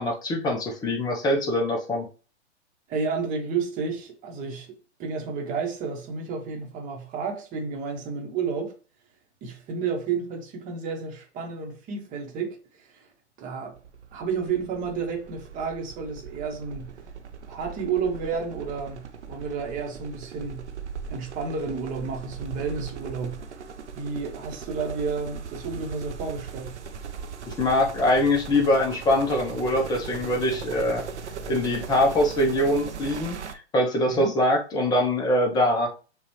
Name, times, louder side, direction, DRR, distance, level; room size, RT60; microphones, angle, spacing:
voice 1, 0.0-2.1 27.5-31.0 31.5-35.9, left 1 dB, 10° left, 0.8 m, -23 dB
voice 2, 2.9-8.7 9.4-13.1 13.4-13.7 14.1-17.0 17.5-20.7 21.1-23.4 23.9-26.8 34.1-34.3, right 5 dB, 20° right, 1.2 m, -31 dB
sound 1, 13.8-33.5, right 6 dB, 70° right, 0.7 m, -39 dB
6.6 x 2.5 x 3.2 m
figure-of-eight pair, 115°, 35 cm